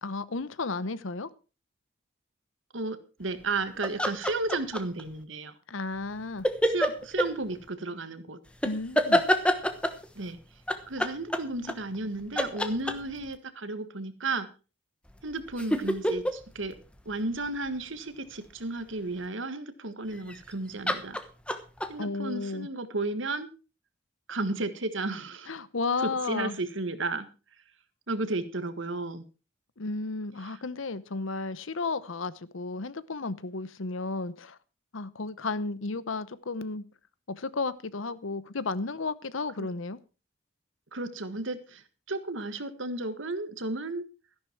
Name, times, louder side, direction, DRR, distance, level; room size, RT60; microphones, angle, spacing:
voice 1, 0.0-1.3 5.7-6.5 8.6-9.2 22.0-22.7 25.5-26.6 29.8-34.6 34.9-36.8 37.3-40.0, left 3 dB, 75° left, 16 dB, 0.9 m, -33 dB
voice 2, 2.7-5.5 6.6-8.4 10.1-10.4 10.9-14.5 15.2-16.8 17.0-21.2 21.9-23.5 24.3-25.5 26.0-27.3 28.1-29.2 30.4-30.6 39.6-39.7 40.9-44.0, right 2 dB, 70° right, 11 dB, 1.6 m, -33 dB
sound 1, 3.8-5.0 6.4-7.3 8.6-10.0 10.7-12.1 12.4-13.3 15.1-17.8 20.2-20.5 20.9-21.9, equal, 5° left, 1.1 m, -27 dB
13.5 x 11.0 x 4.5 m, 0.33 s
head